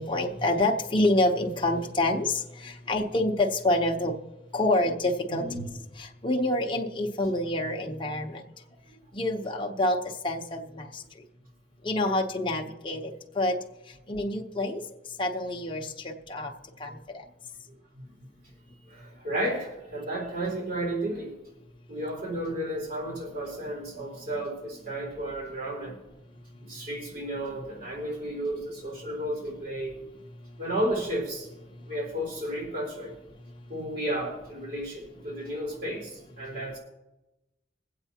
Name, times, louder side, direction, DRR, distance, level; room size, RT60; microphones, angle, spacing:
voice 1, 0.0-4.1 4.5-5.4 6.0-8.4 9.1-10.0 10.2-10.9 11.8-13.5 14.1-14.8 15.2-16.5 16.8-17.0, left 1 dB, 25° left, 0 dB, 0.9 m, -27 dB
voice 2, 5.3-5.7 8.9-9.0 18.0-18.3 18.9-21.3 21.9-26.0 26.6-30.0 30.6-31.5 31.8-33.1 33.7-36.8, right 1 dB, 55° right, -2 dB, 4.0 m, -33 dB
22.5 x 8.1 x 2.9 m, 1.0 s
head